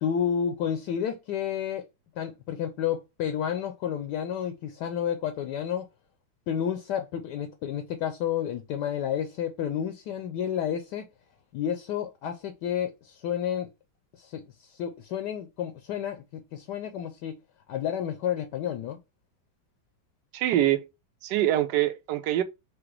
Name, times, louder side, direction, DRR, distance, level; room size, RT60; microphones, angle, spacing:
voice 1, 0.0-1.8 2.2-5.9 6.5-11.0 11.5-13.7 14.2-14.4 14.7-17.4 17.7-19.0, left 9 dB, 70° left, 1.1 m, -30 dB
voice 2, 20.3-20.8 21.2-22.4, right 13 dB, 70° right, 1.2 m, -24 dB
4.9 x 2.1 x 4.5 m
omnidirectional pair, 2.1 m